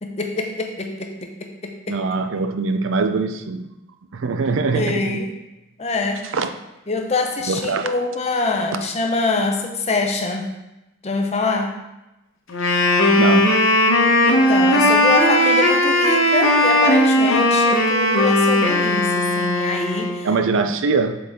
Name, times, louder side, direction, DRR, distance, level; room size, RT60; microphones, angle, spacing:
voice 1, 0.0-2.0 4.7-5.3 5.8-6.3 6.9-10.6 11.0-11.8 14.2-20.3, left 3 dB, 30° left, 3 dB, 0.6 m, -24 dB
voice 2, 1.9-3.7 4.1-5.2 6.3-6.5 7.5-7.9 13.2-13.5 20.2-21.2, right 4 dB, 60° right, 8 dB, 0.4 m, -22 dB
Wind instrument woodwind instrument, 12.5-20.2, left 1 dB, 65° left, 1.0 m, -17 dB
7.6 x 4.0 x 3.6 m, 0.97 s
head